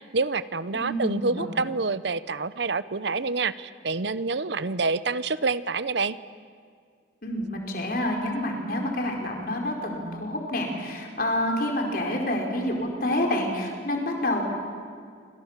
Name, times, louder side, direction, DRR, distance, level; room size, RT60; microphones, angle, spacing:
voice 1, 0.0-6.2, right 3 dB, 70° right, 15 dB, 0.8 m, -27 dB
voice 2, 0.7-1.5 7.2-14.4, left 1 dB, 50° left, 2 dB, 4.7 m, -28 dB
29.0 x 26.0 x 7.4 m, 2.1 s
head